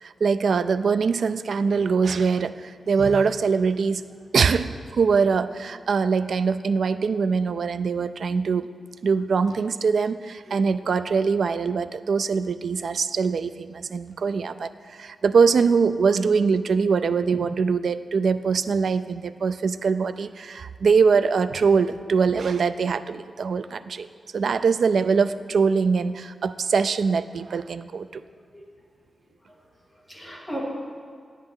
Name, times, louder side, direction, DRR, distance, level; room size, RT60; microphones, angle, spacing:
voice 1, 0.0-4.0 4.3-8.7 9.0-24.1 24.3-28.2, right 5 dB, 65° right, 13 dB, 0.3 m, -23 dB
voice 2, 29.2-30.6, equal, ahead, -6 dB, 2.2 m, -39 dB
10.0 x 10.0 x 3.7 m, 2.1 s
wide cardioid pair, 140°, 0 cm